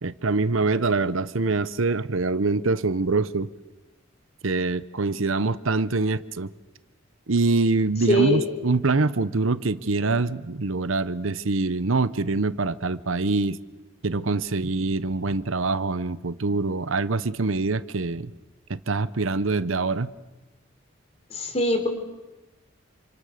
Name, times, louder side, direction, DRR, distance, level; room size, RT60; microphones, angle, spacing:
voice 1, 0.0-3.5 4.4-6.5 7.3-13.6 14.0-18.3 18.7-20.1, right 3 dB, 75° right, 15 dB, 0.9 m, -24 dB
voice 2, 8.1-8.5 21.3-21.9, left 1 dB, 30° left, 5 dB, 3.9 m, -22 dB
28.5 x 26.0 x 6.6 m, 1.1 s
head